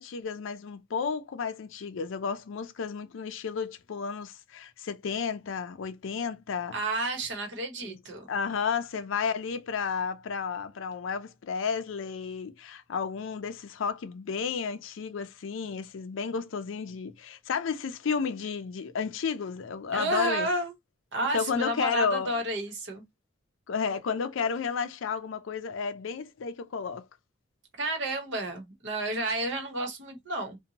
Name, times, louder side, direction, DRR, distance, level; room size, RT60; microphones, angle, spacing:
voice 1, 0.0-6.8 7.8-8.0 8.3-20.5 21.3-22.3 23.7-27.1, left 6 dB, 75° left, 0.4 m, -32 dB
voice 2, 6.7-8.2 19.9-20.7 21.1-23.0 27.8-30.6, right 2 dB, 65° right, 0.9 m, -31 dB
2.7 x 2.2 x 2.8 m
head